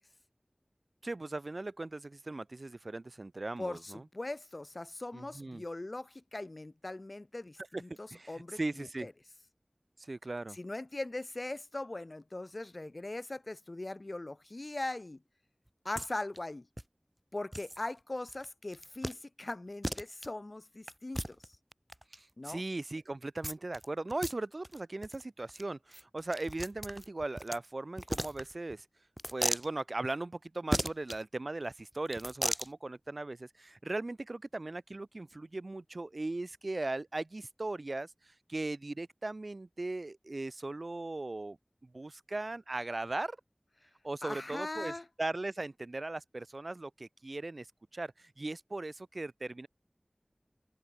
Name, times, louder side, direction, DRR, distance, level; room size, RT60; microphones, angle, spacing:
voice 1, 1.0-4.0 5.1-5.6 7.7-7.8 8.1-9.1 10.0-10.6 22.1-28.9 29.3-38.1 38.5-41.6 41.8-43.4 44.0-44.9 45.2-47.7 47.9-49.7, right 2 dB, 70° right, 5.7 m, -38 dB
voice 2, 3.6-9.1 10.5-15.2 15.8-16.7 17.3-21.6 22.4-22.6 44.2-45.1, left 2 dB, 60° left, 3.2 m, -40 dB
sound 1, 16.0-16.1 16.3-16.4 16.8-16.9 17.5-17.8 18.3-18.5 18.7-19.2 19.5-19.6 19.8-20.3 20.9-22.2 23.4-23.8 24.1-24.3 24.6-24.8 25.0-25.2 25.5-25.6 25.9-27.6 28.0-28.7 29.2-29.7 30.7-31.2 32.1-32.7, equal, 10° right, 0.8 m, -36 dB
open air
wide cardioid pair, 50°, 0 cm